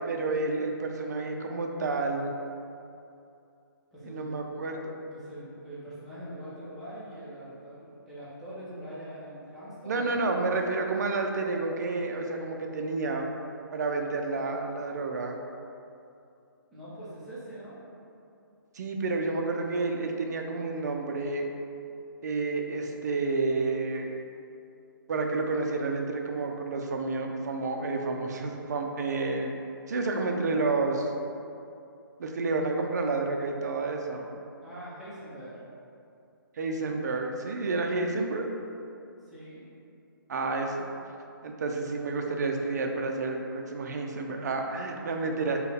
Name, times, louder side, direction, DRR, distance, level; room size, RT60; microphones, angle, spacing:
voice 1, 0.1-2.3 4.0-4.9 9.9-13.3 13.7-15.4 18.7-21.5 22.2-24.1 25.1-29.6 29.9-31.1 32.2-34.3 36.6-38.5 40.3-40.9 41.4-45.6, right 3 dB, 50° right, 3 dB, 0.4 m, -30 dB
voice 2, 3.9-4.3 5.1-10.1 16.7-17.8 34.6-35.6 39.2-39.6, right 1 dB, ahead, -13 dB, 0.5 m, -43 dB
4.5 x 2.1 x 3.3 m, 2.6 s
hypercardioid pair, 170°, 12 cm